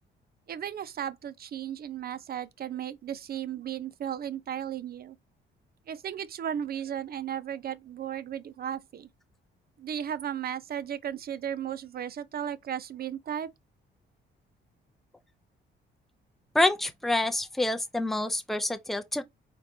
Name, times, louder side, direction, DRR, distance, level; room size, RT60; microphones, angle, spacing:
voice 1, 0.5-5.2 5.9-9.1 9.8-13.5, right 9 dB, 50° right, 0.6 m, -35 dB
voice 2, 16.5-19.2, left 2 dB, ahead, 0.6 m, -27 dB
4.2 x 3.7 x 2.7 m
cardioid pair, 90°, 20 cm